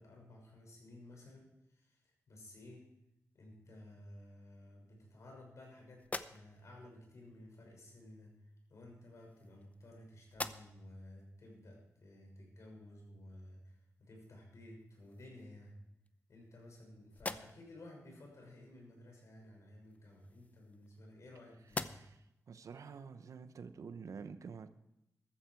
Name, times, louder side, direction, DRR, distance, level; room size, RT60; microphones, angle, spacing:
voice 1, 0.0-2.8 3.3-15.8 16.3-22.1, left 1 dB, 65° left, 0 dB, 6.3 m, -55 dB
sound 1, 6.0-6.8 7.9-8.1 9.0-9.9 10.3-11.0 11.5-11.6 14.2-14.4 14.8-15.5 16.1-16.8 17.1-17.8 19.8-21.3 21.6-22.3, left 2 dB, 25° left, 0.7 m, -46 dB
voice 2, 21.9-24.7, right 5 dB, 75° right, 10 dB, 1.0 m, -49 dB
14.5 x 13.5 x 4.7 m, 0.84 s
wide cardioid pair, 95°, 6 cm